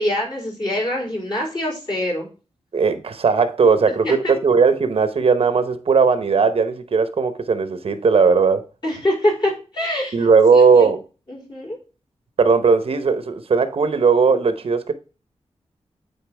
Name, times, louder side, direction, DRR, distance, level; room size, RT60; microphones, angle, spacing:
voice 1, 0.0-2.3 4.0-4.1 8.8-10.9 11.3-11.8, left 1 dB, 40° left, 4.1 m, -24 dB
voice 2, 2.7-8.6 10.1-11.0 12.4-14.9, right 5 dB, 55° right, 0.8 m, -17 dB
8.8 x 3.9 x 3.4 m
wide cardioid pair, 100°, 12 cm